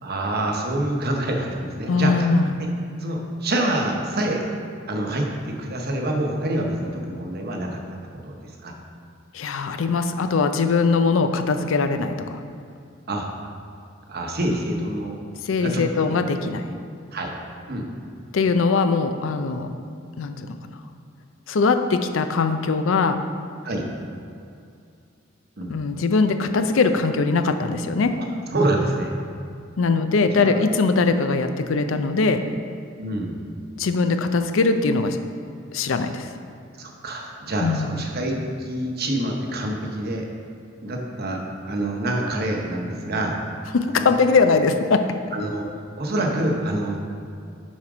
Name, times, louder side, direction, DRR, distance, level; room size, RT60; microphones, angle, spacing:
voice 1, 0.0-2.1 2.6-2.7 3.0-4.5 4.9-8.7 13.1-13.3 14.1-15.2 15.6-15.8 17.1-17.3 17.7-17.9 23.6-23.9 25.6-25.8 28.5-29.1 30.4-30.6 33.0-33.4 36.8-40.3 40.8-43.4 43.9-44.1 45.3-45.6 46.0-47.0, right 1 dB, 50° right, 1 dB, 0.9 m, -26 dB
voice 2, 1.9-2.6 9.3-12.4 15.4-16.6 18.3-19.7 20.2-20.6 21.5-23.2 25.7-28.1 29.8-32.4 33.8-35.2 35.7-36.3 37.6-37.9 43.7-45.0, left 4 dB, 75° left, 8 dB, 0.5 m, -21 dB
7.2 x 4.4 x 5.0 m, 2.4 s
head